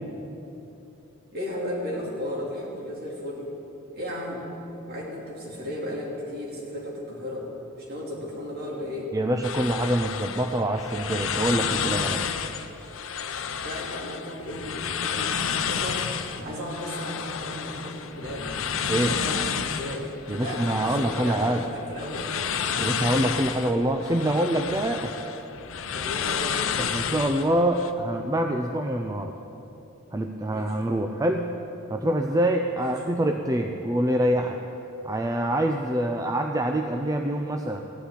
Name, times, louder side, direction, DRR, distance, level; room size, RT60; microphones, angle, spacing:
voice 1, 1.3-3.5 3.9-4.4 4.9-7.5 7.8-9.1 13.6-16.1 16.3-18.5 19.1-20.1 20.4-22.3 25.9-26.6 30.5-30.8 32.8-33.0, left 1 dB, 45° right, -4 dB, 3.1 m, -35 dB
voice 2, 9.1-12.3 18.9-19.2 20.3-21.6 22.8-25.1 26.8-29.3 30.1-31.5 31.9-34.6 35.0-37.8, right 1 dB, 15° right, 4 dB, 0.5 m, -25 dB
sound 1, 9.4-27.9, left 7 dB, 65° left, 0.7 m, -31 dB
16.0 x 5.8 x 9.9 m, 2.9 s
head